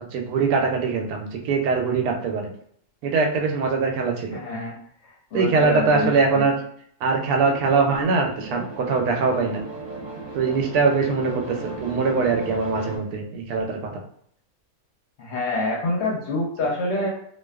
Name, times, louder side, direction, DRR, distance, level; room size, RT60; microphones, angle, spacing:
voice 1, 0.1-2.5 3.0-4.4 5.3-6.5 7.0-9.6 10.3-14.0, right 4 dB, 85° right, 2 dB, 1.1 m, -22 dB
voice 2, 4.3-4.8 5.0-6.4 15.2-17.1, left 2 dB, 60° left, -2 dB, 0.8 m, -26 dB
sound 1, 7.2-13.0, right 2 dB, 40° right, 0.8 m, -36 dB
2.5 x 2.3 x 2.3 m, 0.66 s
omnidirectional pair, 1.6 m